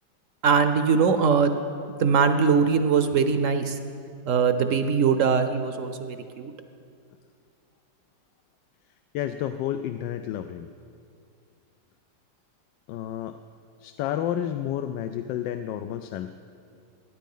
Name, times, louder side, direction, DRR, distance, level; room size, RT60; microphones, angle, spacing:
voice 1, 0.4-1.6 1.9-3.8 4.3-6.5, right 6 dB, 60° right, 9 dB, 0.8 m, -22 dB
voice 2, 9.1-10.7 12.9-13.4 13.8-16.3, left 11 dB, 90° left, 8 dB, 1.3 m, -30 dB
20.5 x 10.0 x 5.4 m, 2.4 s
omnidirectional pair, 1.9 m